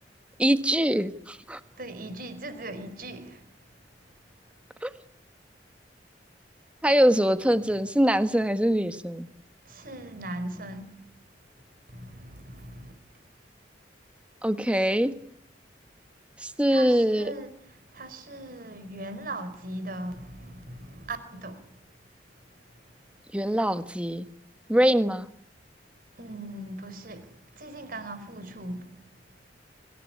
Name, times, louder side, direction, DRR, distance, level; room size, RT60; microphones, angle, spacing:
voice 1, 0.4-1.6 4.8-4.9 6.8-9.3 14.4-15.1 16.4-17.3 23.3-24.3 24.7-25.3, equal, 5° right, 1.4 m, -23 dB
voice 2, 1.8-3.4 9.6-10.9 11.9-12.9 16.7-21.7 26.2-28.9, right 1 dB, 55° right, 4.8 m, -39 dB
25.5 x 16.5 x 9.9 m
head